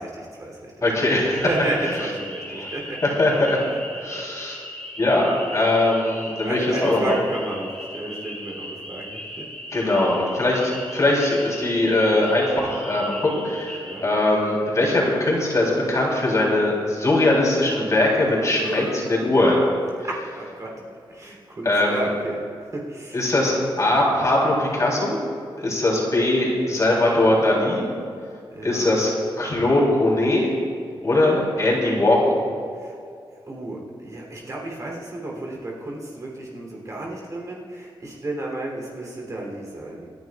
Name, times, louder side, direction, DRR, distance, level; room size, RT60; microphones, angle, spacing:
voice 1, 0.0-3.1 3.7-3.8 6.2-9.4 13.8-14.1 18.4-19.2 20.0-22.4 22.7-23.2 25.7-25.8 28.5-29.0 31.0-31.3 32.8-32.9 33.4-40.1, right 2 dB, 35° right, -2 dB, 3.1 m, -32 dB
voice 2, 0.8-1.5 1.8-1.9 2.6-4.6 5.0-7.1 9.7-19.6 21.6-22.1 23.1-25.2 25.6-27.8 28.6-29.1 29.4-30.5 31.0-32.4, left 1 dB, 35° left, -4 dB, 3.4 m, -21 dB
sound 1, 1.0-14.0, equal, 10° left, 2.5 m, -38 dB
27.0 x 10.5 x 2.4 m, 2.3 s
wide cardioid pair, 135°, 9 cm